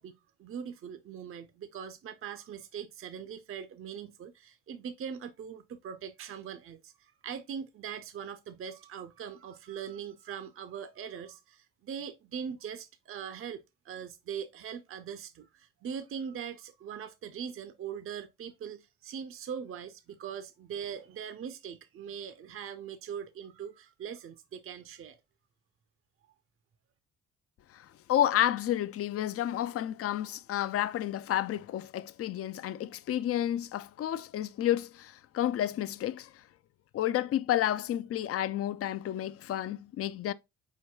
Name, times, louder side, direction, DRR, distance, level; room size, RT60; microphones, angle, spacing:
voice 1, 0.0-25.2, right 7 dB, 45° right, 0.6 m, -41 dB
voice 2, 27.7-36.3 36.9-40.3, left 12 dB, 50° left, 0.4 m, -31 dB
4.6 x 4.4 x 2.2 m
cardioid pair, 90°, 30 cm